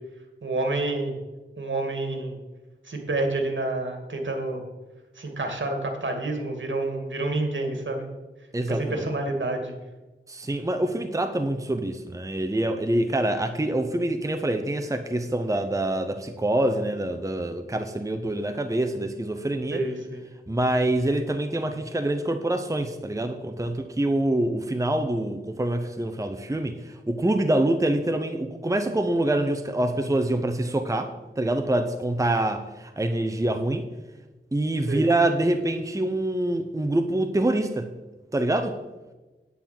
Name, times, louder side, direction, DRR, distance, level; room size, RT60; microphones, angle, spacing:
voice 1, 0.4-1.2 1.6-2.4 2.8-4.6 5.2-8.1 8.7-9.8 19.7-20.2 34.9-35.0, right 2 dB, 70° right, 4 dB, 2.2 m, -28 dB
voice 2, 8.5-9.0 10.3-19.8 20.5-33.9 34.5-37.9 38.3-38.8, right 1 dB, 15° right, 7 dB, 0.8 m, -25 dB
9.7 x 8.7 x 6.0 m, 1.1 s
wide cardioid pair, 70°, 20 cm